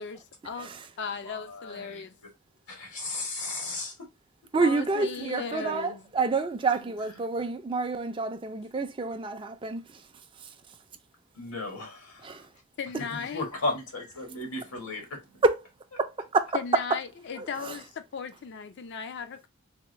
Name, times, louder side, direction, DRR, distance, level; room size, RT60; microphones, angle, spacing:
voice 1, 0.0-2.1 4.6-6.0 12.8-13.5 16.5-19.5, left 6 dB, 50° left, 0.4 m, -37 dB
voice 2, 1.1-2.1 2.7-4.1 6.7-6.8 11.3-12.5 13.0-15.4, left 2 dB, 90° left, 1.4 m, -35 dB
voice 3, 4.5-10.1 10.3-10.8 12.2-12.5 15.4-15.6 16.0-16.8 17.3-17.8, right 3 dB, 20° right, 0.4 m, -28 dB
3.5 x 2.2 x 3.0 m
head